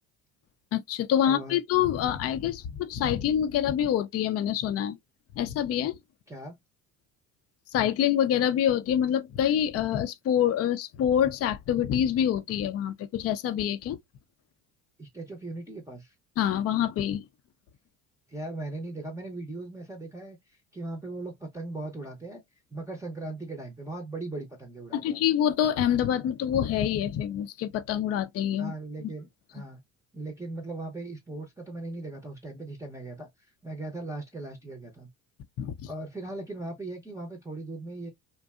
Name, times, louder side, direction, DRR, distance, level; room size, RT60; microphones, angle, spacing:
voice 1, 0.7-5.0 5.3-6.0 7.7-14.0 16.4-17.2 24.9-28.7 29.0-29.1 35.6-35.9, left 10 dB, 40° left, 0.5 m, -26 dB
voice 2, 1.3-1.6 6.3-6.5 15.0-16.1 18.3-22.4 22.7-25.2 28.6-29.8 30.1-33.3 33.6-35.1 35.9-38.1, right 2 dB, 10° right, 0.7 m, -38 dB
2.6 x 2.2 x 2.3 m
hypercardioid pair, 65°, 38 cm